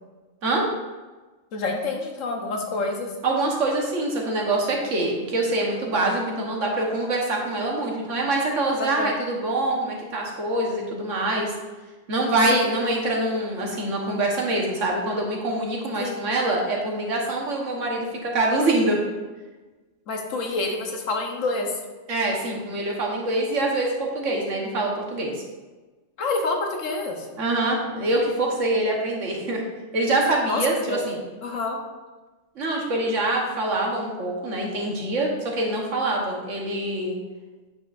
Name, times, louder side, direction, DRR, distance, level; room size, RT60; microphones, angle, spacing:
voice 1, 1.5-3.1 8.8-9.1 12.5-12.7 16.0-16.2 20.1-21.7 26.2-27.3 30.5-31.0 31.4-31.8, left 3 dB, 90° left, 2 dB, 1.4 m, -27 dB
voice 2, 3.2-11.5 12.1-19.0 22.1-25.3 27.4-29.6 29.9-31.2 32.5-37.2, right 2 dB, 75° right, -1 dB, 1.6 m, -25 dB
8.7 x 6.3 x 2.6 m, 1.2 s
omnidirectional pair, 1.3 m